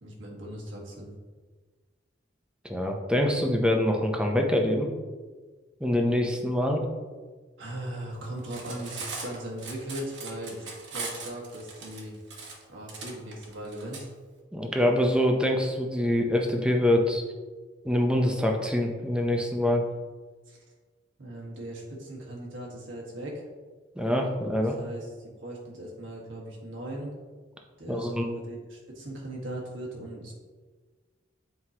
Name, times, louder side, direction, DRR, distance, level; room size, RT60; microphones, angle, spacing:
voice 1, 0.0-1.1 7.6-10.6 10.9-12.1 12.7-14.1 20.5-20.6 21.2-23.4 24.8-25.1 25.4-27.1 27.8-30.3, right 1 dB, 80° right, -3 dB, 1.6 m, -38 dB
voice 2, 2.6-4.9 5.8-6.8 14.5-17.2 17.8-19.8 24.0-24.8 27.9-28.3, left 1 dB, 5° right, 2 dB, 0.6 m, -25 dB
Cutlery silverware, 8.4-14.0, right 4 dB, 65° right, 1.1 m, -39 dB
7.8 x 4.6 x 2.9 m, 1.4 s
head